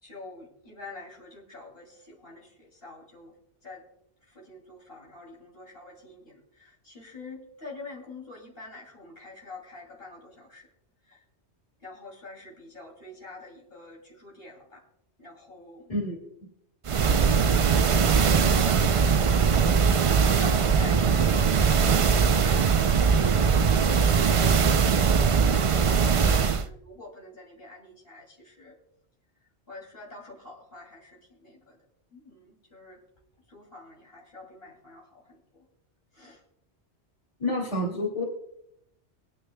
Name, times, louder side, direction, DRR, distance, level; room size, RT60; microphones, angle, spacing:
voice 1, 0.0-3.4 3.6-3.9 4.2-10.7 11.1-11.2 11.8-14.8 15.2-15.9 18.4-28.8 29.7-31.8 32.1-33.0 33.5-35.6 36.1-36.4, left 2 dB, 55° left, -2 dB, 3.0 m, -47 dB
sound 1, 16.9-26.7, right 6 dB, 55° right, 0.3 m, -21 dB
voice 2, 37.4-38.2, left 1 dB, 30° left, 0 dB, 2.4 m, -28 dB
22.5 x 9.6 x 2.2 m, 0.76 s
omnidirectional pair, 1.2 m